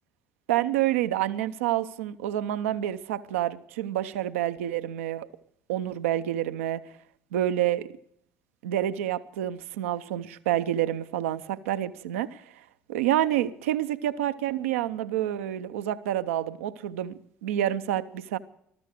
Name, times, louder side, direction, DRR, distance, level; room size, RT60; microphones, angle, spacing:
voice 1, 0.5-5.3 5.7-6.8 7.3-7.9 8.6-12.4 12.9-18.4, right 12 dB, 75° right, 0.6 m, -28 dB
20.0 x 13.5 x 5.0 m
hypercardioid pair, 55°, 7 cm